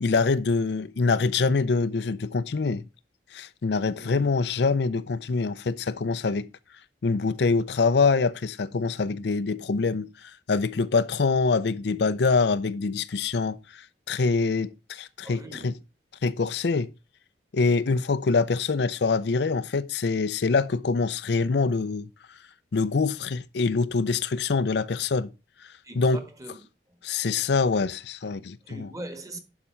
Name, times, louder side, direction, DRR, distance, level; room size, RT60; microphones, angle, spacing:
voice 1, 0.0-2.8 3.3-6.5 7.0-15.7 16.2-16.9 17.5-22.1 22.7-25.3 25.6-26.2 27.0-28.9, left 4 dB, 65° left, 0.5 m, -25 dB
voice 2, 15.2-15.8 25.8-26.6 28.6-29.4, right 1 dB, 20° right, 1.3 m, -41 dB
11.0 x 5.0 x 4.3 m
head